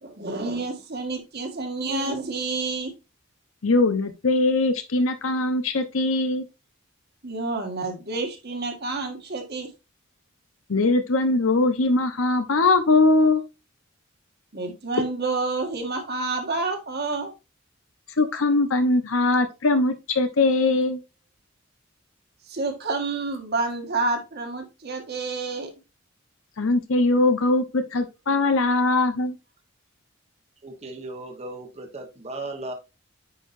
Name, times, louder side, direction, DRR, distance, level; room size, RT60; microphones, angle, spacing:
voice 1, 0.0-2.9 7.2-9.7 14.5-17.3 22.5-25.7, right 3 dB, 55° right, 1.6 m, -29 dB
voice 2, 3.6-6.4 10.7-13.4 18.2-21.0 26.6-29.3, left 2 dB, 90° left, 0.9 m, -21 dB
voice 3, 30.6-32.7, right 2 dB, 30° right, 1.1 m, -36 dB
9.5 x 4.6 x 2.6 m
head